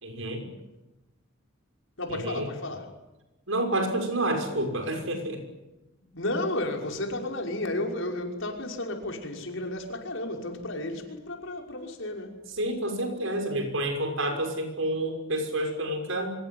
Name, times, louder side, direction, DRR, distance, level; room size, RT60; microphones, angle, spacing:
voice 1, 0.0-0.5 2.1-2.5 3.5-5.4 12.6-16.3, right 1 dB, 75° right, 4 dB, 6.1 m, -29 dB
voice 2, 2.0-2.9 6.1-12.4, left 1 dB, 70° left, 2 dB, 5.7 m, -32 dB
25.5 x 22.5 x 9.5 m, 1.1 s
head